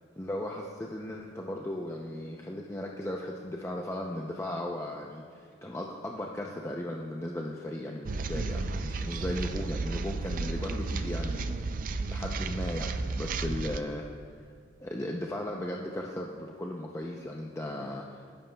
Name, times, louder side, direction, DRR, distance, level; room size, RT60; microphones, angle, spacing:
voice 1, 0.2-14.1 14.8-18.2, left 1 dB, 15° left, -1 dB, 0.5 m, -36 dB
sound 1, 8.1-13.8, right 3 dB, 40° right, 0.4 m, -33 dB
19.5 x 10.5 x 2.3 m, 2.1 s
head